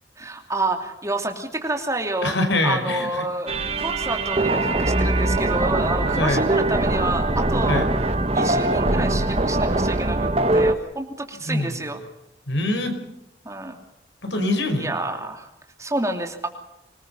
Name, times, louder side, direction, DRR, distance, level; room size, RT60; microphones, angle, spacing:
voice 1, 0.2-2.3 2.6-7.9 8.3-12.0 13.4-13.8 14.8-15.5 15.8-16.5, right 2 dB, 15° right, 3 dB, 2.8 m, -29 dB
voice 2, 2.2-3.1 6.1-6.4 7.7-7.9 11.4-11.8 12.5-12.9 14.2-14.9, left 2 dB, 85° left, 6 dB, 5.2 m, -23 dB
sound 1, 3.5-10.7, right 2 dB, 35° right, 1.1 m, -22 dB
25.5 x 20.5 x 5.6 m, 0.87 s
head